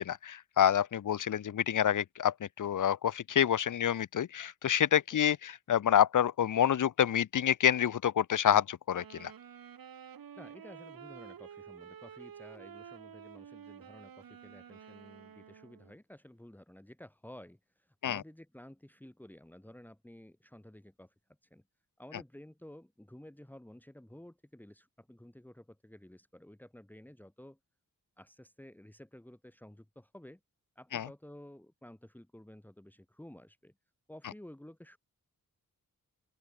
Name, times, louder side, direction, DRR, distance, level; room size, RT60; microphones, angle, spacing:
voice 1, 0.0-9.3 18.0-18.2 30.9-31.0, left 9 dB, 60° left, 0.8 m, -28 dB
sound 1, 8.9-16.0, right 8 dB, 75° right, 2.3 m, -50 dB
voice 2, 10.4-21.1 21.4-21.6 22.0-27.6 28.2-30.4 30.7-33.7 34.1-35.0, left 1 dB, 5° left, 3.3 m, -53 dB
open air
wide cardioid pair, 165°, 35 cm